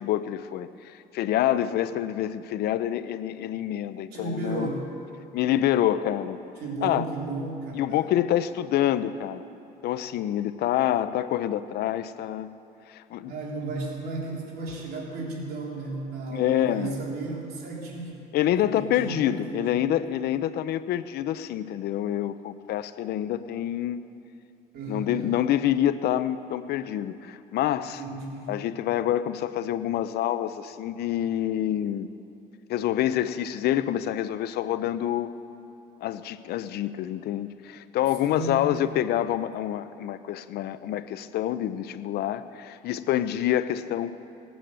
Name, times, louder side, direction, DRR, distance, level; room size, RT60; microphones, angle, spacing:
voice 1, 0.0-4.7 5.3-6.4 6.8-7.0 7.7-9.4 9.8-12.5 12.9-13.3 16.3-16.9 18.3-24.0 24.9-28.0 28.5-32.1 32.7-35.3 36.0-44.1, left 11 dB, 70° left, 13 dB, 0.7 m, -27 dB
voice 2, 4.1-4.9 6.6-8.0 13.3-19.8 24.7-25.3 28.0-28.6 38.2-38.9, right 2 dB, 70° right, -3 dB, 3.6 m, -34 dB
18.5 x 9.2 x 7.6 m, 2.7 s
cardioid pair, 110°, 17 cm